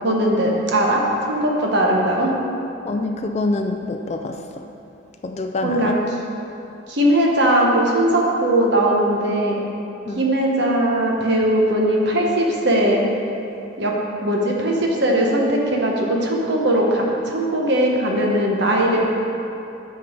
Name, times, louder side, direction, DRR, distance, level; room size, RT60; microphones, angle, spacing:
voice 1, 0.0-2.3 5.6-6.0 6.9-9.6 10.1-13.0 13.8-13.9 14.2-19.1, right 1 dB, 55° right, -1 dB, 1.1 m, -19 dB
voice 2, 2.8-4.6 5.2-6.0 10.1-10.2, left 2 dB, 30° left, 5 dB, 0.3 m, -26 dB
9.0 x 4.7 x 5.1 m, 2.8 s
head